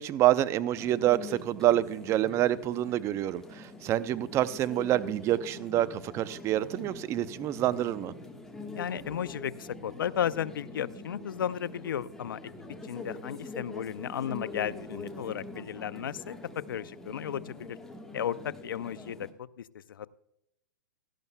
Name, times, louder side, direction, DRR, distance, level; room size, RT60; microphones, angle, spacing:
voice 1, 0.0-8.1, right 13 dB, 25° right, 16 dB, 0.5 m, -27 dB
sound 1, 0.7-19.3, left 2 dB, 5° left, 1.3 m, -44 dB
voice 2, 8.7-12.5 12.8-17.8 18.1-20.1, left 9 dB, 85° left, 17 dB, 0.5 m, -34 dB
16.5 x 12.5 x 2.2 m, 0.81 s
hypercardioid pair, 135°, 11 cm